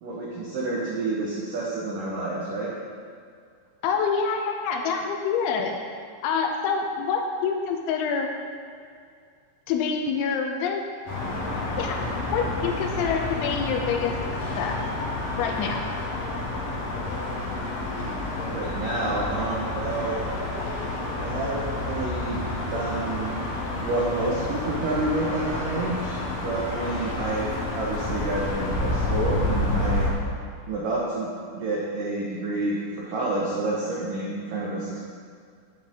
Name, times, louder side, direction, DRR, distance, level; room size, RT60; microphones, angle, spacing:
voice 1, 0.0-2.7 18.5-20.2 21.2-22.4 22.7-23.4 23.8-30.1 30.7-31.3 31.5-35.0, right 2 dB, 80° right, -5 dB, 1.9 m, -29 dB
voice 2, 3.8-5.7 6.2-8.3 9.7-10.8 11.8-12.0 12.3-14.1 14.6-14.8 15.4-15.8, left 6 dB, 85° left, 3 dB, 3.0 m, -26 dB
sound 1, 11.1-30.1, left 2 dB, 50° left, 2.0 m, -29 dB
9.6 x 9.5 x 3.6 m, 2.2 s
omnidirectional pair, 5.5 m